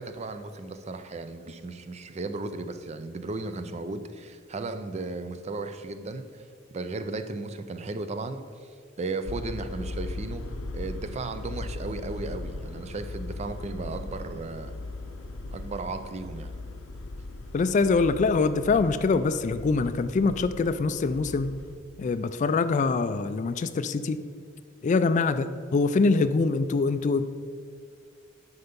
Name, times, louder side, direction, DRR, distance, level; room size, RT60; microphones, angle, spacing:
voice 1, 0.0-6.4 6.7-8.7 9.0-10.5 10.7-14.7 15.5-16.5, right 3 dB, 35° right, 10 dB, 0.4 m, -35 dB
sound 1, 9.2-21.8, left 2 dB, 85° left, 0.6 m, -38 dB
voice 2, 17.5-21.5 22.0-24.2 24.8-27.3, left 4 dB, 40° left, 12 dB, 0.3 m, -24 dB
7.9 x 5.6 x 5.2 m, 2.1 s
head